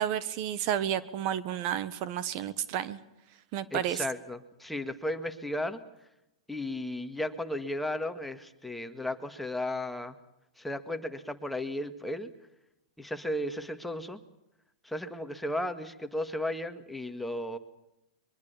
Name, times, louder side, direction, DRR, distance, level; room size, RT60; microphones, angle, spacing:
voice 1, 0.0-3.0 3.5-4.0, right 10 dB, 45° right, 15 dB, 1.4 m, -31 dB
voice 2, 3.7-5.8 6.5-10.2 10.6-12.3 13.0-14.2 14.8-17.6, left 1 dB, 5° left, 8 dB, 1.9 m, -34 dB
23.5 x 22.5 x 7.0 m, 0.88 s
hypercardioid pair, 115°, 3 cm